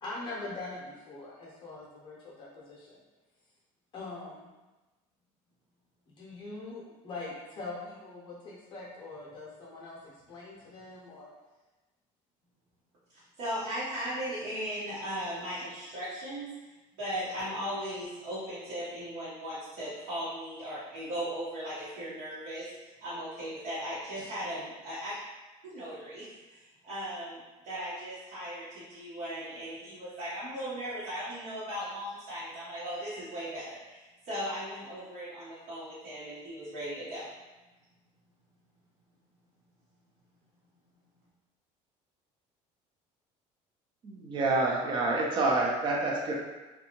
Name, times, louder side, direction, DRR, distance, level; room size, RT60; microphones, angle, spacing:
voice 1, 0.0-3.0 3.9-4.5 6.1-11.3 24.2-24.3, left 2 dB, 35° left, -5 dB, 0.6 m, -43 dB
voice 2, 13.1-16.5 17.0-25.2 25.6-37.2, equal, 70° right, -11 dB, 1.0 m, -37 dB
voice 3, 44.0-46.3, right 2 dB, 35° right, -1 dB, 0.5 m, -27 dB
2.6 x 2.3 x 2.9 m, 1.1 s
cardioid pair, 165°, 14 cm